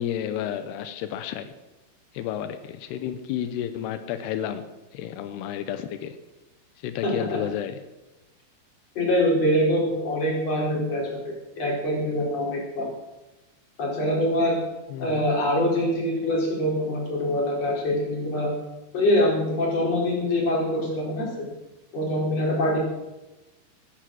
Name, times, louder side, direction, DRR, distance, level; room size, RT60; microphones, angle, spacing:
voice 1, 0.0-1.5 2.1-6.2 6.8-7.8 14.9-15.2, left 10 dB, 90° left, 10 dB, 2.9 m, -31 dB
voice 2, 7.0-7.4 8.9-12.9 13.8-14.6 15.0-18.5 18.9-21.3 21.9-22.8, left 1 dB, 40° left, -2 dB, 5.1 m, -24 dB
22.0 x 9.9 x 6.2 m, 1.0 s
omnidirectional pair, 4.6 m